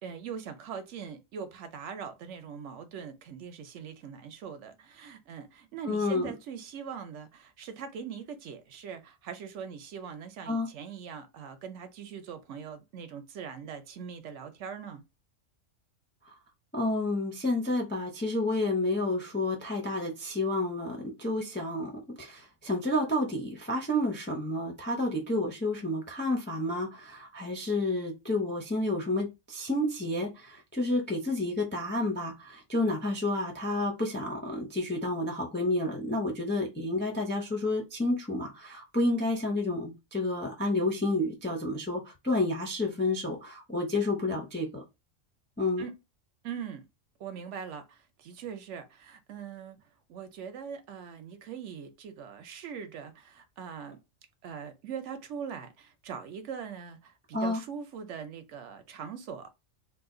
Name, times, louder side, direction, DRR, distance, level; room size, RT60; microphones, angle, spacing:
voice 1, 0.0-15.0 45.8-45.9 46.4-46.9 47.2-54.0 54.4-59.5, right 7 dB, 70° right, 0.9 m, -41 dB
voice 2, 5.9-6.3 10.5-10.7 16.7-21.9 22.2-44.8 45.6-45.8 57.3-57.6, left 2 dB, 15° left, 0.3 m, -30 dB
2.7 x 2.3 x 3.7 m
omnidirectional pair, 1.3 m